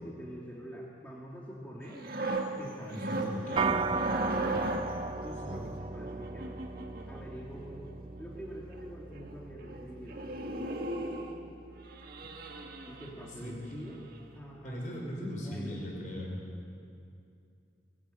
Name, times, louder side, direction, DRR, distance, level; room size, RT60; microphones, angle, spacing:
voice 1, 0.0-2.1 2.6-3.1 3.6-3.9 5.2-6.6 7.0-10.8 12.9-14.0 14.3-14.8 15.4-15.9, equal, 10° left, -5 dB, 2.3 m, -45 dB
sound 1, 1.8-5.1 6.1-7.3 8.4-8.5 8.7-8.9 9.2-9.4 9.6-9.8 10.1-11.4 11.9-13.5 13.9-14.1, right 2 dB, 50° right, 2.0 m, -36 dB
voice 2, 2.9-3.7 4.4-4.5 5.5-5.6 13.2-13.8 14.6-16.4, equal, 45° left, -1 dB, 5.5 m, -39 dB
sound 2, 3.6-13.1, right 4 dB, 25° right, 0.5 m, -38 dB
22.5 x 16.5 x 9.1 m, 2.5 s
head